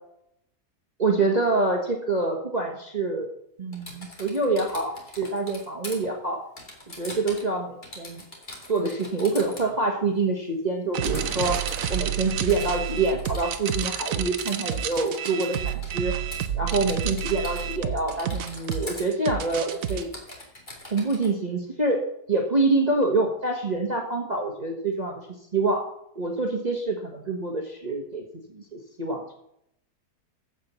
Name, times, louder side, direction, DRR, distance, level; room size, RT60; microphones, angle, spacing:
voice 1, 1.0-3.3 3.6-6.4 7.0-8.2 8.7-16.1 16.5-20.1 20.9-22.0 22.3-25.2 25.5-25.8 26.1-28.2 28.5-29.3, right 3 dB, 25° right, 1 dB, 1.4 m, -26 dB
Typing, 3.7-6.0 6.6-7.5 7.8-9.7 11.0-12.0 12.5-14.1 14.4-15.9 16.3-16.5 16.7-17.8 18.1-19.1 19.4-21.3, left 1 dB, 30° left, 2.8 m, -42 dB
sound 1, 10.9-20.0, right 8 dB, 65° right, 1.1 m, -29 dB
15.0 x 5.4 x 7.0 m, 0.75 s
omnidirectional pair, 1.7 m